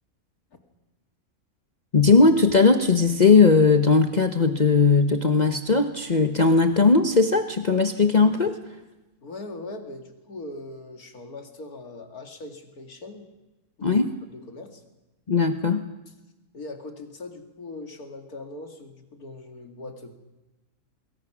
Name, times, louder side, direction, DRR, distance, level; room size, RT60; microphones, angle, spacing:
voice 1, 1.9-8.6 13.8-14.1 15.3-15.9, left 4 dB, 35° left, 6 dB, 1.0 m, -18 dB
voice 2, 9.2-13.3 13.8-14.0 14.3-14.8 16.5-20.1, left 2 dB, 75° left, 4 dB, 2.8 m, -40 dB
26.0 x 21.5 x 6.2 m, 1.1 s
omnidirectional pair, 1.6 m